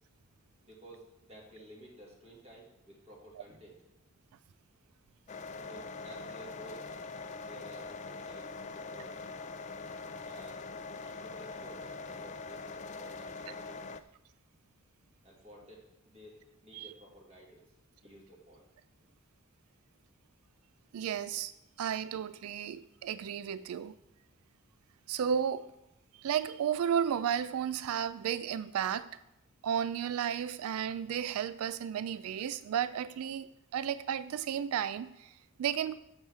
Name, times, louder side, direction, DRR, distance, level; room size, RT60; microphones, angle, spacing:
voice 1, 0.6-3.8 5.5-7.1 7.4-9.3 10.2-10.6 11.0-14.1 15.2-17.7 18.0-18.7 18.9-19.1, right 1 dB, 30° right, -3 dB, 2.1 m, -53 dB
sound 1, 5.3-14.0, left 3 dB, 35° left, 0.3 m, -43 dB
voice 2, 20.9-21.5 21.8-23.9 25.1-25.7 26.1-29.1 29.6-35.9, right 8 dB, 90° right, 15 dB, 0.3 m, -33 dB
8.7 x 7.1 x 4.7 m, 0.88 s
head